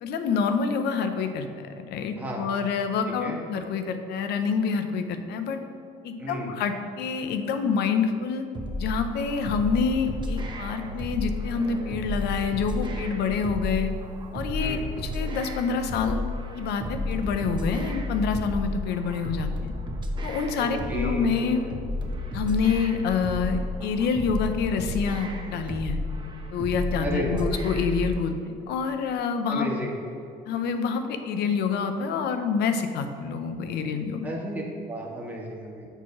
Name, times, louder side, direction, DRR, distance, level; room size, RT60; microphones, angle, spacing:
voice 1, 0.0-5.6 6.0-8.5 8.8-13.9 14.3-16.3 16.5-19.7 20.2-21.6 22.3-26.0 26.5-29.7 30.5-34.3, left 5 dB, 80° left, 8 dB, 0.7 m, -27 dB
sound 1, 8.5-28.1, left 1 dB, 25° right, 0.9 m, -32 dB
voice 2, 20.6-21.3 27.0-27.5 29.5-30.0 34.2-34.6 34.9-35.9, equal, 10° right, -3 dB, 1.4 m, -33 dB
6.7 x 4.7 x 6.0 m, 2.6 s
cardioid pair, 110°, 17 cm